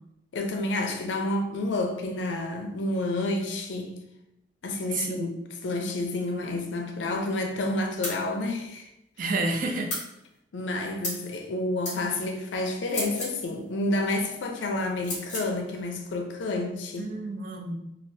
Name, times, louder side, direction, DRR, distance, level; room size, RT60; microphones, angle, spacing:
voice 1, 0.3-4.0 4.6-5.3 5.6-8.9 10.5-17.1, left 2 dB, 90° left, 4 dB, 0.5 m, -29 dB
voice 2, 4.9-5.4 9.2-9.9 17.0-17.8, right 2 dB, 50° right, 3 dB, 0.4 m, -30 dB
sound 1, 8.0-8.2 9.9-10.1 11.0-11.2 11.8-12.0 12.9-13.4 15.0-15.5, left 2 dB, 40° left, 1.3 m, -32 dB
3.2 x 2.4 x 2.7 m, 0.85 s
head